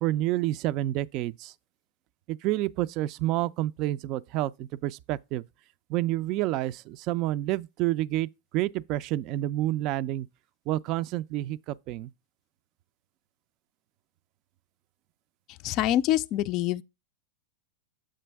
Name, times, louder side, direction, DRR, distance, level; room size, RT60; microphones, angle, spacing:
voice 1, 0.0-1.5 2.3-5.4 5.9-10.3 10.7-12.1, right 15 dB, 45° right, 0.4 m, -29 dB
voice 2, 15.6-16.8, left 13 dB, 40° left, 0.3 m, -25 dB
7.6 x 5.1 x 3.4 m
hypercardioid pair, 120°, 0 cm